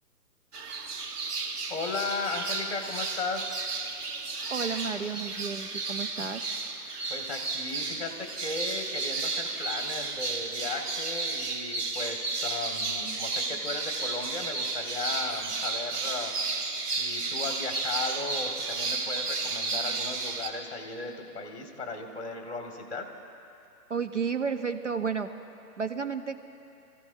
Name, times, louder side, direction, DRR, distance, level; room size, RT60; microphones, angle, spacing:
sound 1, 0.5-20.5, right 3 dB, 75° right, 1.6 m, -33 dB
voice 1, 1.7-3.6 7.1-16.6 17.0-23.1, left 3 dB, 40° left, 2 dB, 1.9 m, -36 dB
voice 2, 4.5-6.4 23.9-25.3 25.8-26.4, right 6 dB, 50° right, 8 dB, 0.6 m, -32 dB
27.0 x 15.5 x 2.7 m, 2.8 s
hypercardioid pair, 180°, 47 cm